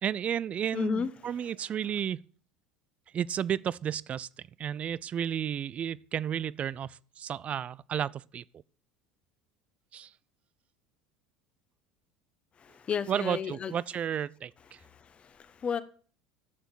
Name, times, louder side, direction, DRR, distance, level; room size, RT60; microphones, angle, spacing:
voice 1, 0.0-2.2 3.1-4.3 4.6-8.4 9.9-10.1 13.1-14.5, right 9 dB, 40° right, 0.5 m, -32 dB
voice 2, 0.7-1.1 12.6-13.7 14.8-15.8, left 7 dB, 35° left, 1.3 m, -33 dB
11.5 x 7.1 x 8.4 m
hypercardioid pair, 80°, 4 cm